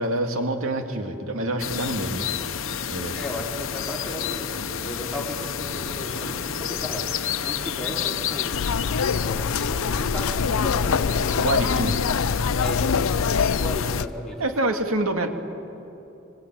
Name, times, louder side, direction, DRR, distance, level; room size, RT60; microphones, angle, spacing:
voice 1, 0.0-2.3 2.9-3.1 11.4-12.0 14.4-15.3, right 1 dB, 85° right, 5 dB, 2.2 m, -26 dB
sound 1, 1.6-14.0, left 8 dB, 70° left, 0.9 m, -30 dB
voice 2, 3.1-7.1 7.4-8.5 9.1-11.7 12.6-13.2 13.6-14.4, left 1 dB, ahead, -3 dB, 4.1 m, -35 dB
sound 2, 8.5-14.1, left 5 dB, 90° left, 0.5 m, -24 dB
26.0 x 25.0 x 9.0 m, 2.9 s
head